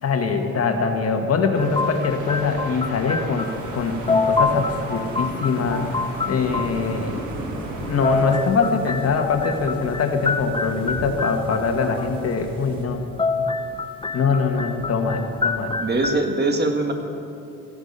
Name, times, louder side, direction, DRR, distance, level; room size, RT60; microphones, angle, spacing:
voice 1, 0.0-7.2 7.8-13.0 14.1-15.7, left 4 dB, 50° left, 5 dB, 1.5 m, -23 dB
sound 1, 1.5-8.4, right 3 dB, 80° right, 1.6 m, -37 dB
sound 2, 1.6-3.8 4.1-6.8 7.8-12.0 13.0-16.2, left 4 dB, 15° left, 0.7 m, -27 dB
sound 3, 3.4-12.8, right 1 dB, 15° right, 3.9 m, -38 dB
voice 2, 15.8-16.9, right 2 dB, 35° right, 4 dB, 1.6 m, -22 dB
15.0 x 11.5 x 5.5 m, 2.6 s
cardioid pair, 90°, 30 cm